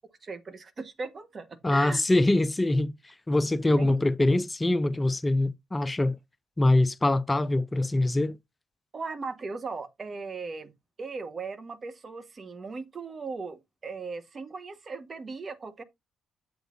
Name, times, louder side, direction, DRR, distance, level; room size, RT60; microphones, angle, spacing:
voice 1, 0.2-2.0 3.8-3.9 8.9-10.7 11.0-15.8, right 4 dB, 45° right, 1.4 m, -38 dB
voice 2, 1.6-6.2 6.6-8.4, left 2 dB, 20° left, 0.5 m, -24 dB
7.7 x 7.7 x 2.6 m
hypercardioid pair, 50°, 0 cm